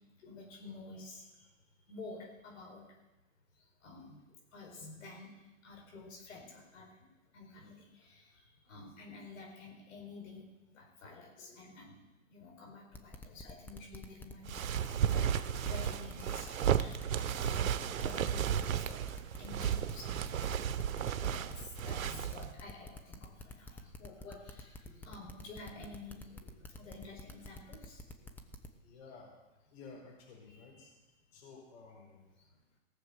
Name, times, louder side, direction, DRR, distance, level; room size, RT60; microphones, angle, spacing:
voice 1, 0.2-2.8 3.5-7.1 7.3-20.9 21.1-28.3 30.5-30.9 32.4-32.8, left 3 dB, 75° left, -1 dB, 4.6 m, -51 dB
sound 1, 12.9-28.7, left 2 dB, 5° left, 0.8 m, -48 dB
sound 2, 14.5-22.5, right 9 dB, 85° right, 0.8 m, -34 dB
voice 2, 28.8-29.3 29.6-30.9 31.3-32.3, left 4 dB, 55° left, 0 dB, 4.7 m, -53 dB
18.0 x 6.9 x 8.0 m, 1.1 s
hypercardioid pair, 135°, 39 cm